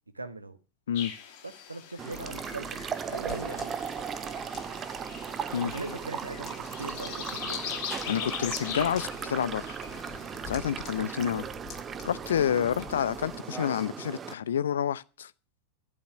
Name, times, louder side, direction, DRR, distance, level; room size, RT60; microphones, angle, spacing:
voice 1, 0.1-0.6 1.4-2.8 3.1-3.8 5.6-7.8 10.9-11.5, right 2 dB, 80° right, 1.3 m, -40 dB
sound 1, 0.9-11.1, left 8 dB, 45° left, 2.9 m, -41 dB
sound 2, 2.0-14.3, right 7 dB, 25° right, 0.8 m, -37 dB
sound 3, 2.1-13.4, left 8 dB, 25° left, 4.4 m, -49 dB
voice 2, 8.0-9.8 10.5-11.4 12.0-15.3, left 9 dB, 65° left, 0.6 m, -29 dB
11.5 x 10.5 x 5.7 m
figure-of-eight pair, 90°, 0 cm